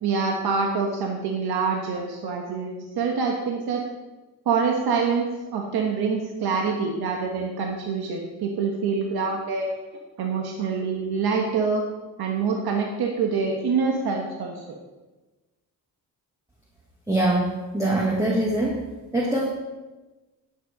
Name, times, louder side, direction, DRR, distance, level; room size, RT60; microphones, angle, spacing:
voice 1, 0.0-3.8 4.4-5.3 5.5-9.7 10.2-11.8 12.2-14.6, right 5 dB, 80° right, 1 dB, 1.4 m, -25 dB
voice 2, 17.1-18.8 19.1-19.5, right 1 dB, 10° right, -3 dB, 2.0 m, -23 dB
10.5 x 7.7 x 5.2 m, 1.2 s
cardioid pair, 80°, 38 cm